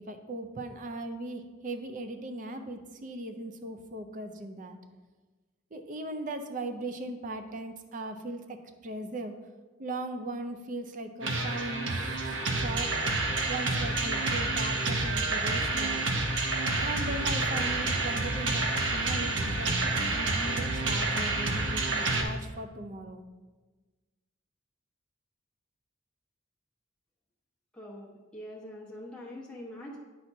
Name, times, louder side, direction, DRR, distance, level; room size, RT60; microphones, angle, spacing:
voice 1, 0.0-4.8 5.7-9.4 9.8-12.9 13.5-16.0 16.8-23.2, right 2 dB, 40° right, 7 dB, 0.5 m, -38 dB
sound 1, 11.2-22.2, right 2 dB, 70° right, 0.8 m, -29 dB
voice 2, 27.7-30.0, left 1 dB, 5° left, -5 dB, 1.1 m, -44 dB
9.2 x 5.9 x 2.7 m, 1.3 s
head